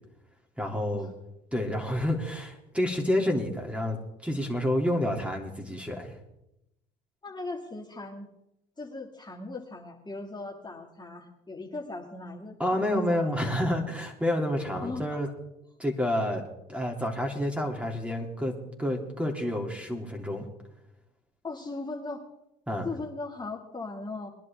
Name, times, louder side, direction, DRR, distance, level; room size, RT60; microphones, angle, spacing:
voice 1, 0.6-1.1 1.5-4.0 4.2-6.1 12.6-15.3 15.8-16.4 16.7-20.5 22.7-22.9, left 1 dB, 5° right, 2 dB, 3.0 m, -29 dB
voice 2, 7.2-8.3 8.8-13.7 14.8-15.3 21.4-22.2 22.8-24.3, left 3 dB, 20° left, -1 dB, 2.3 m, -39 dB
21.5 x 11.0 x 3.6 m, 0.85 s
hypercardioid pair, 65°, 19 cm